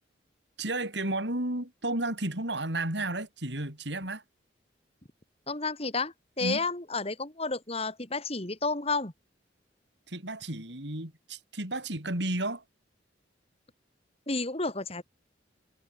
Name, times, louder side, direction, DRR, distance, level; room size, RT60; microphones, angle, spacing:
voice 1, 0.6-4.2 6.4-6.6 10.1-12.6, right 2 dB, 70° right, 6.2 m, -32 dB
voice 2, 5.5-9.1 14.3-15.0, left 3 dB, 35° left, 3.0 m, -31 dB
head